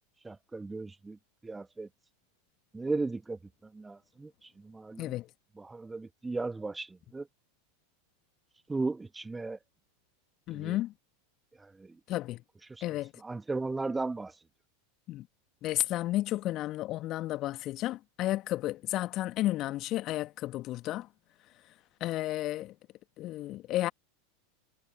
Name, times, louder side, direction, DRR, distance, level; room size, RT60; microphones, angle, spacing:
voice 1, 0.2-1.9 2.7-5.1 5.6-7.3 8.7-9.6 10.5-10.8 11.6-12.0 12.7-12.8 13.2-14.4, right 3 dB, 10° right, 2.5 m, -36 dB
voice 2, 10.5-10.9 12.1-12.4 12.8-13.1 15.1-15.3 15.6-21.1 22.0-22.7 23.2-23.9, left 15 dB, 40° left, 1.8 m, -32 dB
figure-of-eight pair, 85°, 0 cm